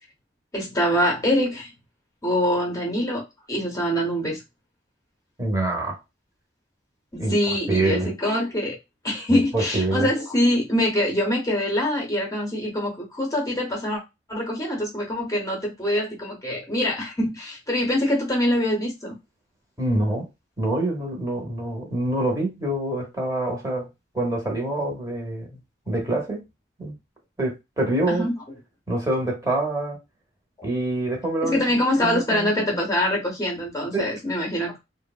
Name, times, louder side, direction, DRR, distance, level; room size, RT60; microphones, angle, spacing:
voice 1, 0.5-1.7 2.2-3.2 3.5-4.4 7.1-8.8 9.0-14.0 14.3-19.2 28.1-28.3 30.6-30.7 31.4-34.7, left 1 dB, 20° left, 0.7 m, -24 dB
voice 2, 5.4-6.0 7.2-8.1 9.3-10.1 19.8-20.3 20.6-23.9 24.1-26.4 26.8-26.9 27.4-28.3 28.9-30.0 30.6-31.6 32.0-32.8 33.9-34.1, right 1 dB, 20° right, 0.8 m, -26 dB
3.1 x 2.0 x 2.3 m
head